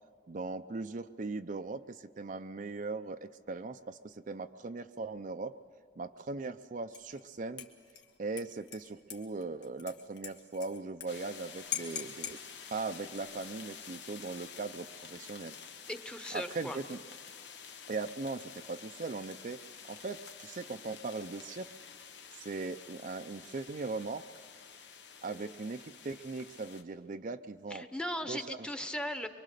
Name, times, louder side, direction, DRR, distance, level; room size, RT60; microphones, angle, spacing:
voice 1, 0.3-5.6 6.0-7.7 8.2-12.4 12.7-15.6 16.3-17.0 17.9-21.7 22.3-24.3 25.2-27.9 28.3-28.7, right 3 dB, 50° right, 9 dB, 0.5 m, -39 dB
Dishes pots and pans / Liquid, 6.9-7.2 7.6-11.1 11.3-11.4 11.7-12.4 13.3-13.8, left 9 dB, 75° left, 2.0 m, -42 dB
sound 1, 11.1-26.8, left 7 dB, 90° left, 1.3 m, -50 dB
voice 2, 15.9-16.8 25.3-25.5 27.7-29.3, equal, 5° left, 8 dB, 0.9 m, -38 dB
24.0 x 24.0 x 6.7 m, 2.2 s
head